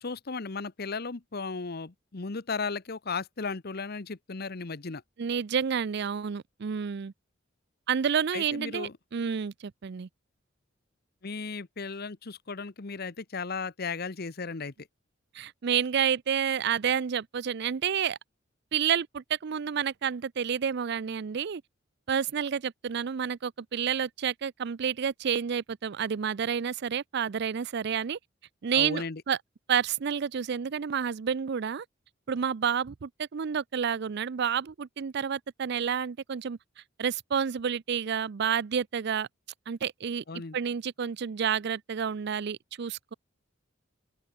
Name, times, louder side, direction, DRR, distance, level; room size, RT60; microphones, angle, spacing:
voice 1, 0.0-5.0 8.3-8.9 11.2-14.9 28.7-29.2 40.3-40.6, left 4 dB, 50° left, 1.0 m, -35 dB
voice 2, 5.2-7.1 7.9-10.1 15.3-18.2 18.7-21.6 22.1-28.2 28.6-29.4 29.7-31.8 32.3-36.6 37.0-39.3 39.7-40.2 40.5-43.1, right 7 dB, 60° right, 0.5 m, -29 dB
open air
head